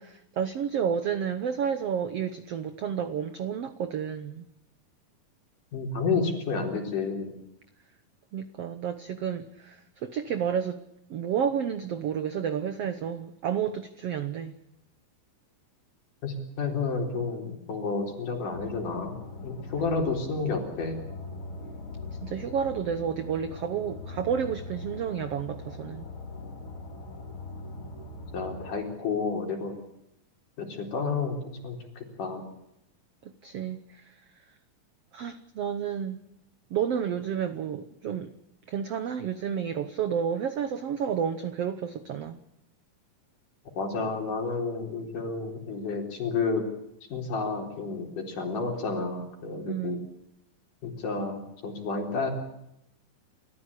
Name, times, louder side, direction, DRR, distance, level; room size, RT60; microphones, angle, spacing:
voice 1, 0.0-4.5 8.3-10.8 11.1-14.5 22.2-26.1 33.4-34.1 35.1-36.2 36.7-38.3 38.7-42.4 49.6-50.1, right 8 dB, 75° right, 11 dB, 1.4 m, -31 dB
voice 2, 5.7-7.3 16.2-21.0 28.3-29.7 30.6-32.4 43.8-46.7 47.1-50.0 50.8-52.3, left 4 dB, 60° left, 2 dB, 5.4 m, -31 dB
sound 1, 18.5-28.7, left 2 dB, 35° left, 3.3 m, -41 dB
29.0 x 14.0 x 8.4 m, 0.81 s
omnidirectional pair, 4.2 m